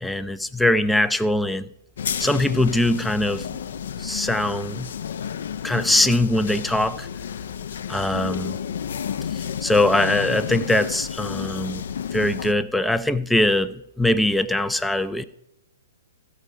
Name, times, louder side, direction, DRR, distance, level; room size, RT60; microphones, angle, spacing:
voice 1, 0.0-1.7 2.2-3.4 4.0-4.9 5.6-7.1 7.9-8.6 9.6-11.8 12.1-15.2, left 1 dB, 5° left, 0.5 m, -22 dB
sound 1, 2.0-12.5, left 8 dB, 55° left, 0.6 m, -31 dB
15.0 x 5.0 x 8.3 m
figure-of-eight pair, 115°, 0 cm